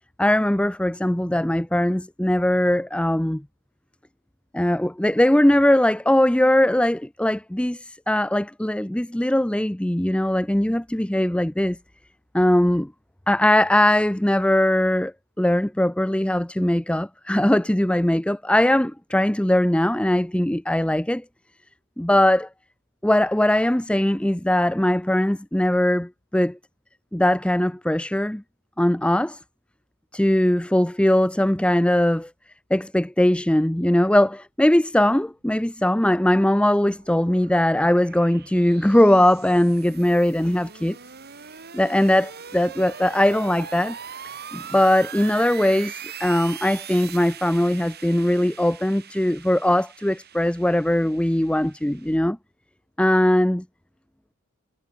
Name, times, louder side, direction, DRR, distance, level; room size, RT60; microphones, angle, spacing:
voice 1, 0.2-3.4 4.5-11.8 12.3-12.9 13.3-21.2 22.0-22.5 23.0-26.6 27.1-28.4 28.8-29.4 30.1-32.3 32.7-41.0 41.7-44.0 44.5-52.4 53.0-53.6, left 1 dB, 5° left, 0.6 m, -20 dB
sound 1, 36.7-52.2, right 7 dB, 50° right, 4.4 m, -41 dB
head